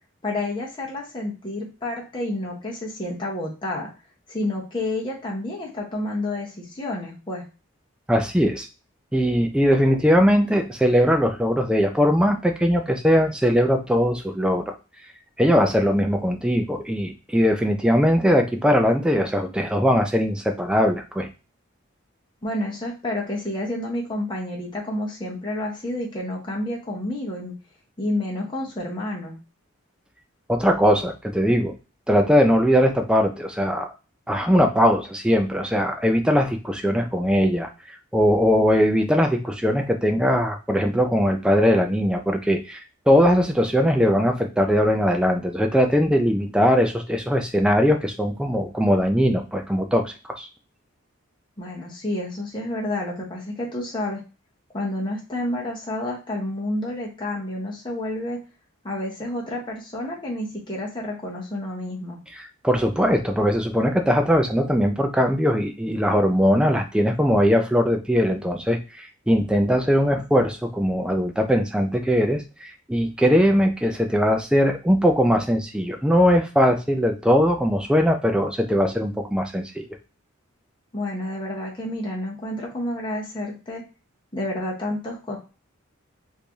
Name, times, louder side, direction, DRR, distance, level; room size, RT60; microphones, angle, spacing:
voice 1, 0.2-3.9 4.3-7.4 22.4-27.5 28.0-29.4 51.6-54.2 54.7-58.4 58.8-62.2 80.9-83.8 84.3-85.4, left 1 dB, 20° left, -3 dB, 0.8 m, -29 dB
voice 2, 8.1-8.7 9.1-14.7 15.4-21.3 30.5-31.7 32.1-33.9 34.3-42.8 43.1-50.5 62.3-79.9, equal, 5° right, 4 dB, 0.4 m, -20 dB
3.2 x 2.7 x 3.4 m, 0.32 s
head